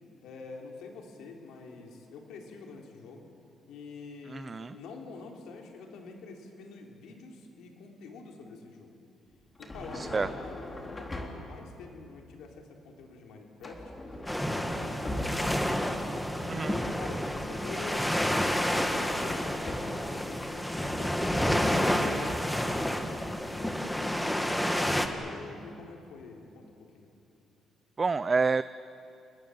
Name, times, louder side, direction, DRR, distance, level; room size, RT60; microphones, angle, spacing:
voice 1, 0.2-3.3 3.7-9.0 9.6-13.9 14.2-15.7 16.5-22.8 23.3-27.1, left 4 dB, 85° left, 1 dB, 3.9 m, -46 dB
voice 2, 4.3-4.8 9.9-10.3 16.4-16.8 28.0-28.6, right 4 dB, 30° right, 14 dB, 0.5 m, -28 dB
sound 1, 9.6-11.6 13.6-15.7 18.6-20.1 20.4-20.6, left 1 dB, 25° left, 4.0 m, -40 dB
sound 2, 14.3-25.1, equal, 5° left, 2.1 m, -29 dB
29.5 x 20.5 x 8.1 m, 2.7 s
cardioid pair, 90°, 0 cm